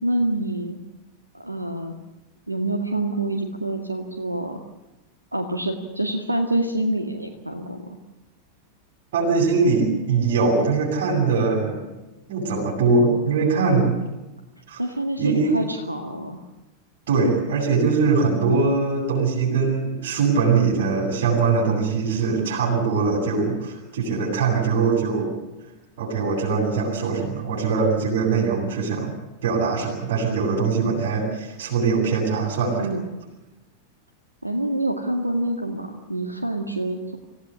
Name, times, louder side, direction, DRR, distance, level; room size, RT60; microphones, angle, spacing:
voice 1, 0.0-0.8 1.4-2.0 2.5-4.6 5.3-8.0 13.6-14.0 14.8-16.4 32.8-33.0 34.4-37.2, right 1 dB, 85° right, 4 dB, 2.0 m, -26 dB
voice 2, 9.1-11.8 12.3-13.9 14.7-14.8 15.2-15.6 17.1-25.3 26.0-29.1 29.4-32.9, right 4 dB, 55° right, -4 dB, 8.0 m, -22 dB
26.5 x 16.5 x 8.5 m, 1.1 s
figure-of-eight pair, 90°, 0 cm